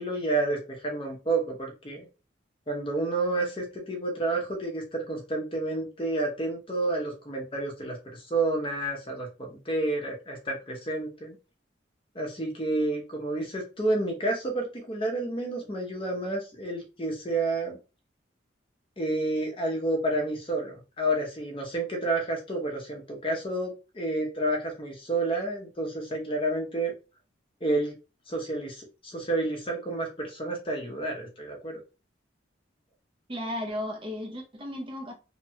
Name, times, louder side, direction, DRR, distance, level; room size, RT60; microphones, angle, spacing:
voice 1, 0.0-2.1 2.7-11.4 12.1-17.8 19.0-26.9 27.6-27.9 28.3-31.8, right 2 dB, 25° left, 0.7 m, -30 dB
voice 2, 33.3-35.1, left 1 dB, 25° right, 0.5 m, -34 dB
2.8 x 2.2 x 2.8 m
head